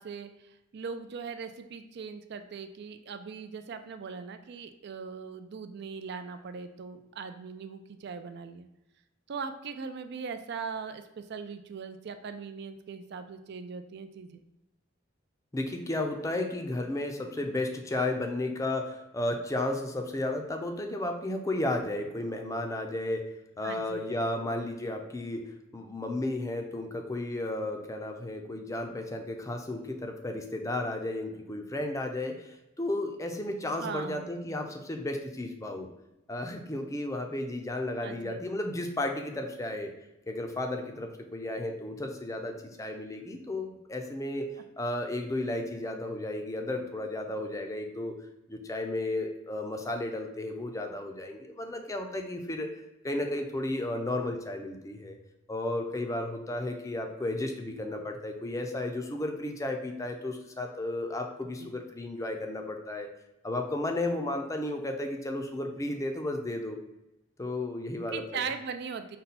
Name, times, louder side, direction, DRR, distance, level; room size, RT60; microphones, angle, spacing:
voice 1, 0.0-8.7 9.3-14.4 23.6-24.1 33.8-34.3 38.0-38.4 61.6-61.7 68.1-69.2, right 5 dB, 55° right, 9 dB, 0.4 m, -40 dB
voice 2, 15.5-23.3 23.6-35.9 36.3-39.9 40.3-44.5 44.8-48.2 48.5-52.7 53.0-55.2 55.5-63.1 63.4-66.8 67.4-68.4, left 1 dB, 15° left, 4 dB, 0.5 m, -33 dB
5.3 x 2.2 x 4.1 m, 0.93 s
head